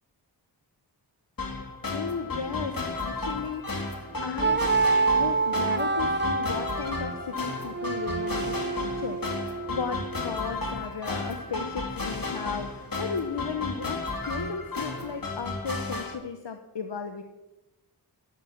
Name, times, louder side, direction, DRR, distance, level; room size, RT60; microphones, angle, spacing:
sound 1, 1.4-16.1, left 3 dB, 55° left, 2.4 m, -33 dB
voice 1, 1.9-4.7 5.2-17.2, left 6 dB, 80° left, 7 dB, 1.0 m, -35 dB
sound 2, 4.4-10.3, right 4 dB, 25° right, 0.7 m, -27 dB
12.0 x 11.5 x 7.1 m, 1.1 s
wide cardioid pair, 50°, 42 cm